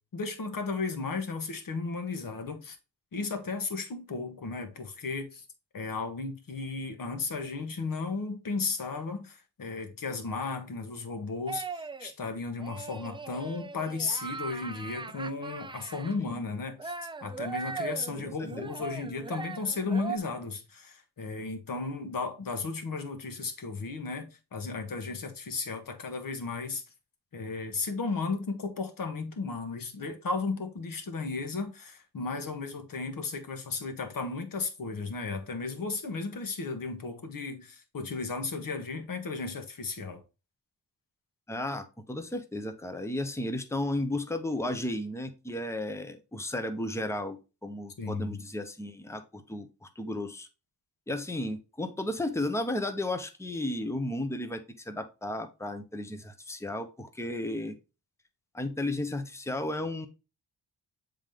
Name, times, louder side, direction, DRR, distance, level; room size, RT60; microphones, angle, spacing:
voice 1, 0.1-2.8 3.1-5.4 5.7-16.9 17.2-26.8 27.3-40.2 48.0-48.4, left 4 dB, 55° left, 1.4 m, -34 dB
sound 1, 11.5-12.1 12.6-16.2 16.8-20.2, right 4 dB, 15° right, 0.3 m, -39 dB
voice 2, 18.2-18.7 41.5-50.5 51.1-57.8 58.5-60.1, left 1 dB, 5° left, 0.9 m, -34 dB
7.3 x 3.8 x 3.5 m
cardioid pair, 95°, 40 cm